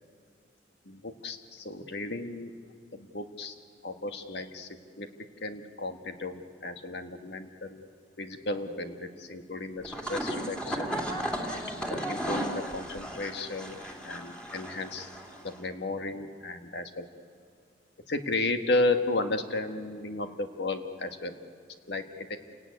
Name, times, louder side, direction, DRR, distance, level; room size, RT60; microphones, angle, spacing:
voice 1, 0.9-2.5 2.9-3.5 3.8-4.7 5.0-5.1 5.4-7.9 8.2-11.0 11.9-15.1 15.4-17.1 18.1-21.4 21.9-22.4, left 2 dB, 65° left, 6 dB, 1.8 m, -33 dB
sound 1, 9.8-15.6, right 1 dB, 5° left, 2.7 m, -35 dB
29.0 x 17.5 x 9.6 m, 2.1 s
head